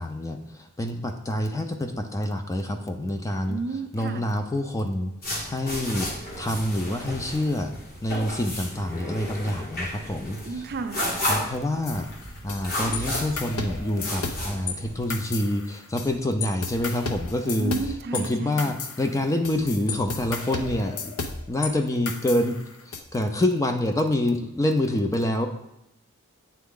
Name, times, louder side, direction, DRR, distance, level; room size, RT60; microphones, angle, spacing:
voice 1, 0.0-3.6 3.9-5.1 5.5-6.1 6.4-7.7 8.0-10.6 11.2-12.1 12.4-17.8 18.1-21.1 21.5-22.6 22.9-25.5, left 1 dB, 15° left, 5 dB, 0.4 m, -27 dB
voice 2, 3.5-4.3 10.4-11.2 17.6-18.8, right 4 dB, 45° right, 7 dB, 0.5 m, -32 dB
sound 1, 5.2-15.2, left 1 dB, 45° left, 1.7 m, -33 dB
sound 2, 11.9-14.7 15.1-16.1 16.4-21.7 22.1-23.0, left 4 dB, 75° left, 0.6 m, -33 dB
8.3 x 3.4 x 3.7 m, 0.86 s
head